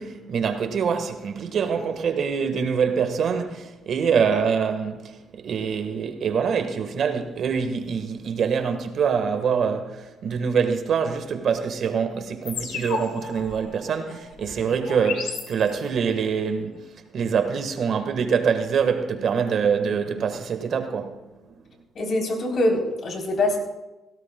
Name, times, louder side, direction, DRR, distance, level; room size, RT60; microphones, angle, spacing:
voice 1, 0.0-16.8 17.1-21.3, right 6 dB, 65° right, 1.4 m, -25 dB
sound 1, 12.5-16.1, left 5 dB, 85° left, 2.6 m, -35 dB
voice 2, 21.9-23.6, left 2 dB, 55° left, 3.5 m, -24 dB
17.0 x 17.0 x 2.2 m
cardioid pair, 90°, 0 cm